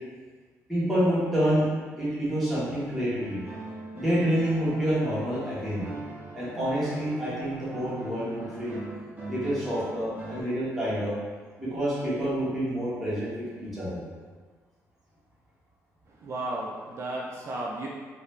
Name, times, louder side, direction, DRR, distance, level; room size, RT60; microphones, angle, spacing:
voice 1, 0.7-1.6 2.0-3.4 3.9-5.9 6.3-8.8 9.3-11.2 11.6-14.0, equal, ahead, -11 dB, 1.4 m, -28 dB
sound 1, 3.2-10.4, right 2 dB, 25° right, 0.9 m, -41 dB
voice 2, 16.1-17.9, right 1 dB, 50° right, -3 dB, 0.4 m, -34 dB
2.9 x 2.6 x 3.3 m, 1.5 s
cardioid pair, 115°, 6 cm